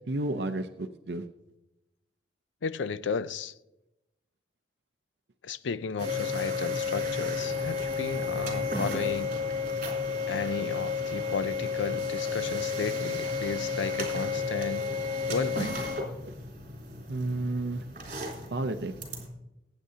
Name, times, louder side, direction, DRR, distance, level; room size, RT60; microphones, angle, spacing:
voice 1, 0.1-1.2 16.3-16.4 17.1-17.8 18.5-18.9, right 2 dB, 60° right, 0.6 m, -31 dB
voice 2, 2.6-3.5 5.4-9.3 10.3-14.9 15.3-15.9, left 5 dB, 80° left, 0.5 m, -34 dB
sound 1, 6.0-19.3, left 4 dB, 45° right, 3.6 m, -32 dB
21.0 x 9.0 x 2.8 m
head